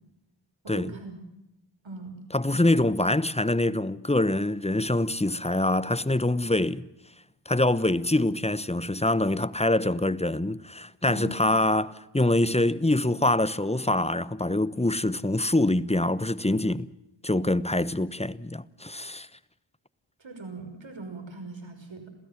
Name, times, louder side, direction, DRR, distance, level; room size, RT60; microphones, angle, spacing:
voice 1, 0.6-1.1 1.8-2.2 11.1-11.4 20.2-22.1, right 2 dB, 75° right, 6.1 m, -40 dB
voice 2, 2.3-6.9 7.5-16.9 17.2-19.3, left 1 dB, 15° left, 1.0 m, -25 dB
27.5 x 16.5 x 7.5 m
cardioid pair, 45°, 46 cm